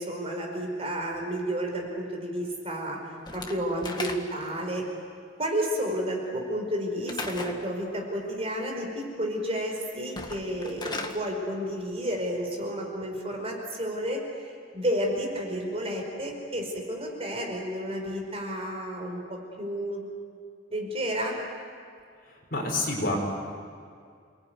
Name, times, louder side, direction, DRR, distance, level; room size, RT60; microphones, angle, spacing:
voice 1, 0.0-3.0 3.3-4.8 5.4-14.2 14.7-20.0 20.7-21.3, equal, 35° right, 1 dB, 5.1 m, -31 dB
Slam / Wood, 3.3-4.6 7.1-7.6 10.0-11.2, left 3 dB, 25° left, 1.8 m, -36 dB
voice 2, 22.5-23.2, left 2 dB, 50° left, -1 dB, 6.4 m, -27 dB
29.0 x 19.5 x 9.6 m, 2.2 s
head